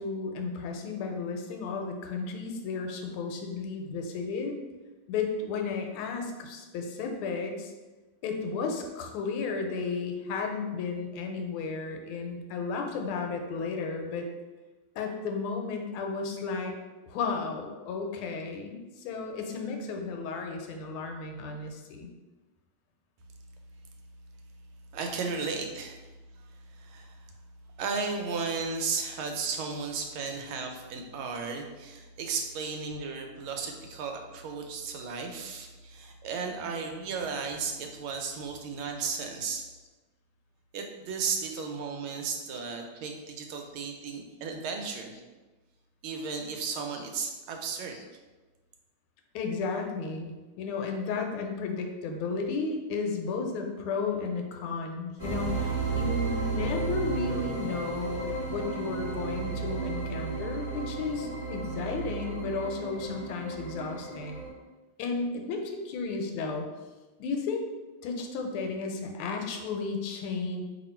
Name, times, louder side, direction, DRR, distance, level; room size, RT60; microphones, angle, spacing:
voice 1, 0.0-4.6 5.1-7.7 8.2-14.2 14.9-16.7 17.1-22.1 49.3-64.4 65.0-66.7 67.2-67.6 68.0-70.6, left 4 dB, 85° left, 3 dB, 1.4 m, -33 dB
voice 2, 24.9-26.0 26.4-27.2 27.8-39.6 40.7-45.2 46.0-48.0, right 5 dB, 80° right, 3 dB, 1.4 m, -34 dB
sound 1, 55.2-64.5, right 4 dB, 45° left, 0.4 m, -33 dB
3.0 x 2.8 x 4.2 m, 1.2 s
omnidirectional pair, 2.3 m